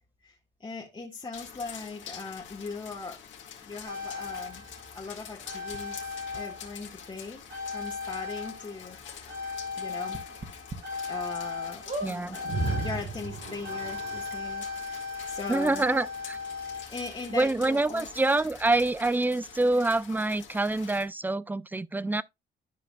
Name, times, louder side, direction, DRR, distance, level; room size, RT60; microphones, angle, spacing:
voice 1, 0.6-3.2 3.6-4.6 4.9-6.0 6.3-7.4 7.7-10.2 11.1-12.5 12.8-15.8 16.5-18.1, left 4 dB, 25° left, 1.5 m, -40 dB
sound 1, 1.3-21.1, left 8 dB, 70° left, 1.9 m, -46 dB
sound 2, 3.9-7.1 7.5-17.6 18.6-18.7, left 2 dB, 70° right, 4.5 m, -36 dB
sound 3, 5.7-5.8 6.3-6.4 7.4-7.5 7.8-7.9 8.3-8.4 10.1-10.8 11.3-11.4 11.8-12.1 13.0-13.1 13.3-13.4, right 1 dB, 35° right, 2.1 m, -37 dB
voice 2, 12.0-12.4 15.5-16.4 17.3-22.2, right 2 dB, 10° right, 0.4 m, -26 dB
11.5 x 4.9 x 2.3 m
cardioid pair, 90°, 20 cm